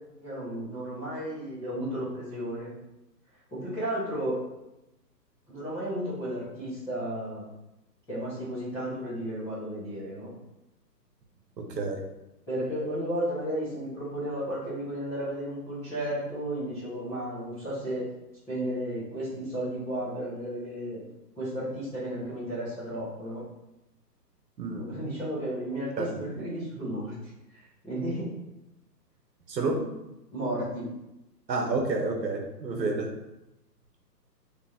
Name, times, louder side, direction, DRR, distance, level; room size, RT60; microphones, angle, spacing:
voice 1, 0.2-2.7 3.5-4.4 5.5-7.4 8.1-10.3 12.5-18.1 18.5-21.0 21.4-23.4 24.7-28.3 30.3-30.9, right 1 dB, 5° left, -13 dB, 0.7 m, -33 dB
voice 2, 11.6-12.0 24.6-24.8 26.0-26.1 29.5-29.9 31.5-33.1, right 3 dB, 80° right, 1 dB, 1.0 m, -29 dB
4.0 x 3.3 x 2.4 m, 0.93 s
hypercardioid pair, 140°, 50 cm